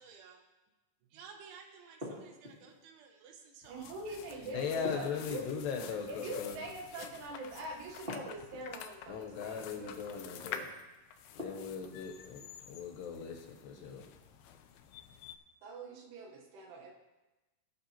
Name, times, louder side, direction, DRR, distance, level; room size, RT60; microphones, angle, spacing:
voice 1, 0.0-0.4 1.1-4.4 7.0-7.1, right 6 dB, 90° right, 3 dB, 3.7 m, -54 dB
sound 1, 2.0-2.8 4.8-5.9 8.1-8.8 11.4-12.0, left 2 dB, 25° right, 1.3 m, -43 dB
sound 2, 3.6-15.4, left 8 dB, 90° left, 2.2 m, -49 dB
voice 2, 3.7-5.5 6.1-10.7 15.6-16.9, right 2 dB, 70° right, 2 dB, 3.1 m, -44 dB
voice 3, 4.4-6.6 9.1-10.7 11.3-14.1, left 6 dB, 75° left, 3 dB, 2.9 m, -39 dB
18.0 x 8.1 x 2.9 m, 1.1 s
omnidirectional pair, 5.3 m